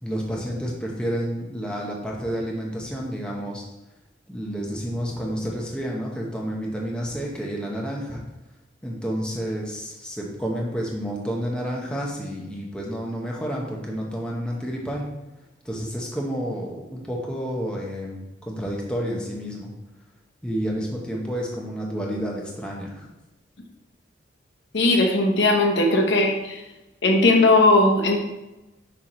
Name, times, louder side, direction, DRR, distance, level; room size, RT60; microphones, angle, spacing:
voice 1, 0.0-3.6 4.3-8.2 8.8-15.1 15.6-19.7 20.4-23.1, equal, 5° left, -2 dB, 0.8 m, -30 dB
voice 2, 24.7-26.6 27.0-28.2, left 2 dB, 65° left, 1 dB, 0.8 m, -18 dB
5.8 x 4.4 x 3.8 m, 1.0 s
head